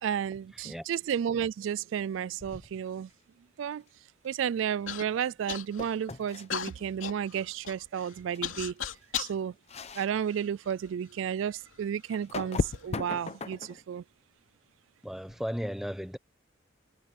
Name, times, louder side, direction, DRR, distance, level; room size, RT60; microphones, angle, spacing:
voice 1, 0.0-3.1 3.6-3.8 4.2-8.7 9.1-9.5 9.9-14.0, right 8 dB, 75° right, 0.3 m, -32 dB
sound 1, 2.4-2.9 5.8-6.5 8.3-8.4 8.8-9.0 9.7-10.1 10.7-10.8 12.1-13.8, left 3 dB, 35° left, 0.8 m, -41 dB
Human voice / Cough, 4.9-5.1 5.5-6.0 6.5-9.4 10.1-10.9 11.7-11.8 12.5-12.8, left 8 dB, 85° left, 3.0 m, -37 dB
sound 2, 9.7-10.1 12.6-13.1 15.1-15.4, left 4 dB, 50° left, 0.4 m, -32 dB
voice 2, 15.0-16.2, equal, ahead, 1.0 m, -35 dB
head